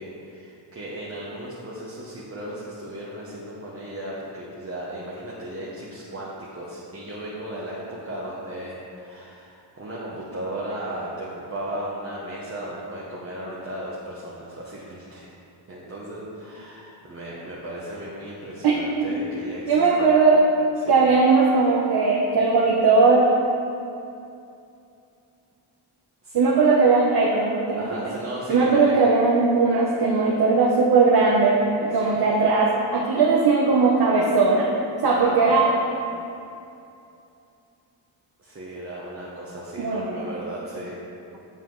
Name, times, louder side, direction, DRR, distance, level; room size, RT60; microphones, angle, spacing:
voice 1, 0.0-15.3 15.7-20.2 20.8-21.1 26.2-26.4 27.8-29.0 32.0-32.3 35.1-35.7 38.4-41.0, right 1 dB, 30° right, -6 dB, 1.0 m, -35 dB
voice 2, 18.6-19.1 19.7-20.4 20.9-23.3 26.3-27.8 28.5-34.7 35.0-35.7 39.8-40.2, right 4 dB, 55° right, -3 dB, 0.9 m, -19 dB
7.3 x 7.3 x 3.8 m, 2.6 s
wide cardioid pair, 145°, 45 cm